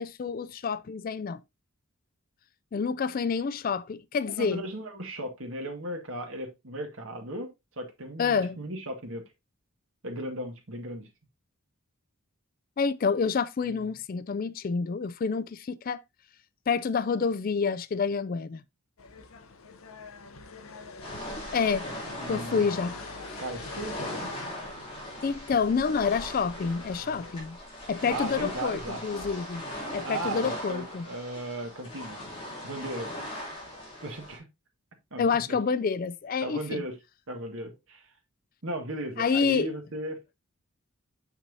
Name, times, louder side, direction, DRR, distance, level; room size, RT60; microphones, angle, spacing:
voice 1, 0.0-1.4 2.7-4.6 8.2-8.6 12.8-16.0 16.7-18.6 21.5-21.9 22.3-22.9 25.2-27.6 27.9-29.6 29.9-31.1 35.2-36.8 39.2-39.7, left 5 dB, 40° left, 0.3 m, -28 dB
voice 2, 4.3-9.2 10.0-11.1 13.6-13.8 22.2-22.7 23.4-24.3 28.1-29.0 30.0-32.2 32.6-33.1 34.0-34.5 35.1-35.6 36.4-37.0 37.3-38.1 38.6-40.3, right 1 dB, 65° right, 1.8 m, -36 dB
sound 1, 19.0-27.3, left 4 dB, 75° left, 0.8 m, -45 dB
sound 2, 21.0-34.4, left 1 dB, 25° left, 2.9 m, -39 dB
6.8 x 5.8 x 2.7 m
head